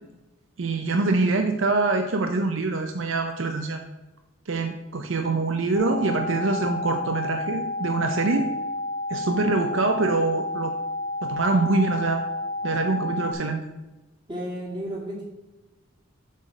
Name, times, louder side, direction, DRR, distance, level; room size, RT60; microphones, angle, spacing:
voice 1, 0.6-3.8 4.5-8.5 9.1-10.7 11.2-12.2 12.6-13.6, right 3 dB, 65° right, 6 dB, 0.6 m, -24 dB
sound 1, 5.7-13.3, left 2 dB, 5° right, 2.1 m, -30 dB
voice 2, 14.3-15.2, equal, 20° right, -4 dB, 2.3 m, -32 dB
7.5 x 3.9 x 6.2 m, 1.1 s
head